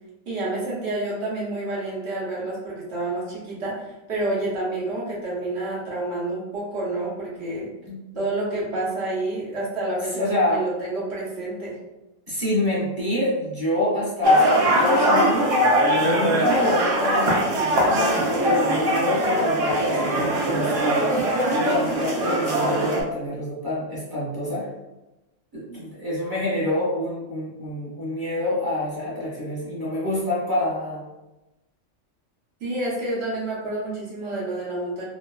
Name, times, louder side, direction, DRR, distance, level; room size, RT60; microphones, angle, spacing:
voice 1, 0.3-7.7 8.1-10.3 10.5-11.8 14.5-14.7 32.6-35.0, right 2 dB, 60° right, -6 dB, 1.1 m, -29 dB
voice 2, 10.1-10.6 12.3-15.6 16.0-24.7 25.5-31.0, left 1 dB, 20° right, -9 dB, 0.9 m, -27 dB
sound 1, 14.2-23.0, equal, 80° right, 1.0 m, -21 dB
3.1 x 2.1 x 2.3 m, 1.0 s
omnidirectional pair, 1.3 m